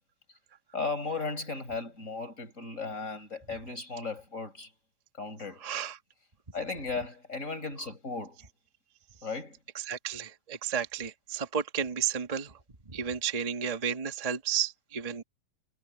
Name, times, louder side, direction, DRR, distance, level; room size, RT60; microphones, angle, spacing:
voice 1, 0.7-4.7 5.2-5.6 6.5-8.4 9.2-9.6, left 4 dB, 20° left, 6.1 m, -36 dB
voice 2, 5.6-6.0 9.9-12.5 12.9-15.2, right 8 dB, 30° right, 0.7 m, -32 dB
omnidirectional pair, 3.7 m